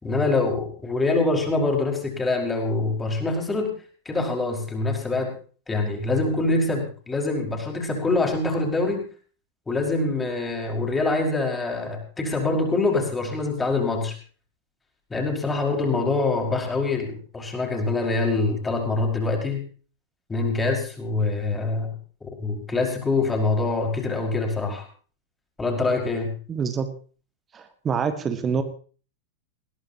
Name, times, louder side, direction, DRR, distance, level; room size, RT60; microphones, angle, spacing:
voice 1, 0.0-3.7 4.1-5.3 5.7-9.0 9.7-14.1 15.1-19.6 20.3-21.9 22.4-24.9 25.6-26.3, left 3 dB, 10° left, 2 dB, 5.4 m, -24 dB
voice 2, 26.5-26.9 27.5-28.6, right 6 dB, 20° right, 8 dB, 1.9 m, -26 dB
20.5 x 17.5 x 2.9 m, 0.40 s
figure-of-eight pair, 90°, 0 cm